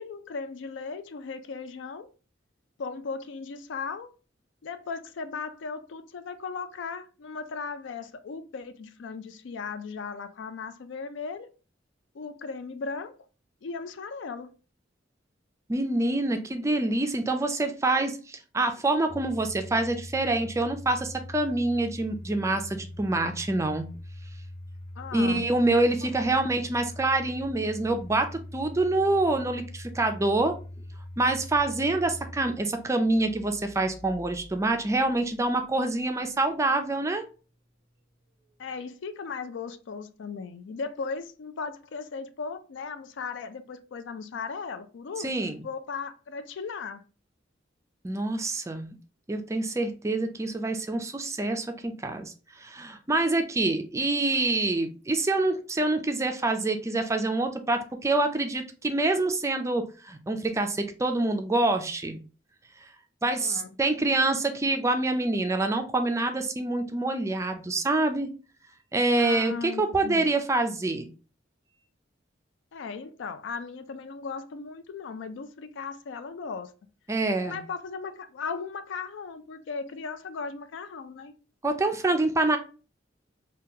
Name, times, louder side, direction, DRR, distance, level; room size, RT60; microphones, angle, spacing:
voice 1, 0.0-2.1 2.8-4.1 4.6-11.5 12.1-13.1 13.6-14.5 25.0-25.4 26.0-26.2 38.6-47.0 63.3-63.8 69.2-70.3 72.7-76.7 77.5-81.4, left 5 dB, 70° left, 0.4 m, -37 dB
voice 2, 15.7-23.9 25.1-30.5 31.2-37.3 45.2-45.6 48.0-48.9 49.3-62.2 63.2-68.3 68.9-71.1 77.1-77.6 81.6-82.6, right 2 dB, 15° right, 0.4 m, -26 dB
Domestic sounds home sounds, 19.1-36.0, left 1 dB, 30° left, 0.7 m, -43 dB
2.8 x 2.3 x 3.6 m
head